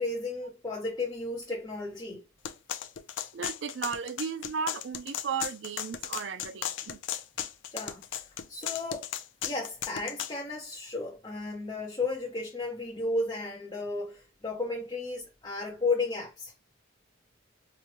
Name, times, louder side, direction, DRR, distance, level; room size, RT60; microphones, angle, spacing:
voice 1, 0.0-2.2 7.7-8.0 8.5-9.1 9.4-16.5, left 3 dB, 20° left, 0.7 m, -33 dB
sound 1, 2.5-10.3, left 9 dB, 70° left, 0.4 m, -36 dB
voice 2, 3.3-7.0, right 6 dB, 65° right, 0.4 m, -35 dB
4.8 x 2.1 x 2.9 m
head